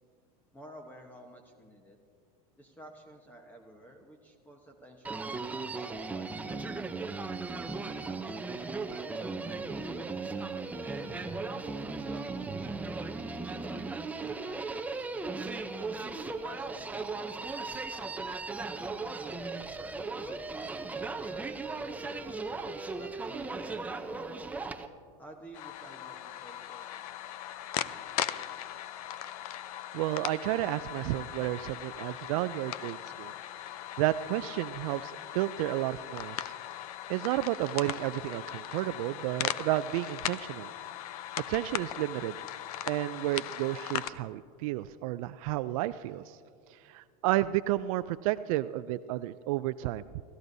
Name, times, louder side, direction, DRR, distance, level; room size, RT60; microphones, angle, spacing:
voice 1, 0.5-2.0 2.6-5.3 5.7-7.1 8.1-11.3 12.0-14.8 15.1-15.8 16.4-19.5 20.1-22.3 23.0-24.5 25.2-27.0, right 1 dB, 10° left, 3 dB, 1.0 m, -52 dB
Human voice, 5.0-24.9, right 3 dB, 10° right, 0.6 m, -37 dB
sound 1, 25.5-44.1, left 12 dB, 80° left, 0.6 m, -39 dB
voice 2, 29.9-33.3 34.0-36.5 37.1-40.7 41.5-42.4 42.9-46.4 46.7-50.2, right 15 dB, 65° right, 13 dB, 0.4 m, -32 dB
30.0 x 14.0 x 2.7 m, 2.3 s
supercardioid pair, 130°, 19 cm